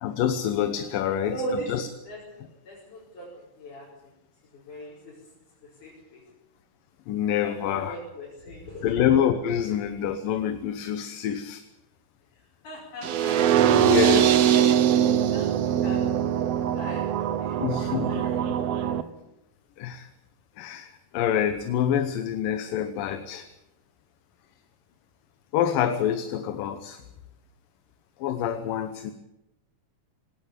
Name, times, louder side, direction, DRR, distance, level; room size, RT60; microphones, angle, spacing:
voice 1, 0.0-1.9 7.1-8.0 8.8-11.6 13.7-14.8 17.6-18.3 19.8-20.1 20.6-23.5 25.5-27.0 28.2-29.1, left 9 dB, 85° left, 9 dB, 2.8 m, -27 dB
voice 2, 1.0-1.7 2.1-3.9 4.5-5.1 5.8-6.2 7.4-8.9 12.6-13.9 15.2-16.0 16.7-18.9, right 1 dB, 65° left, -4 dB, 6.9 m, -40 dB
sound 1, 13.0-19.0, right 10 dB, 65° right, 1.7 m, -22 dB
19.5 x 18.0 x 8.4 m, 0.89 s
omnidirectional pair, 3.8 m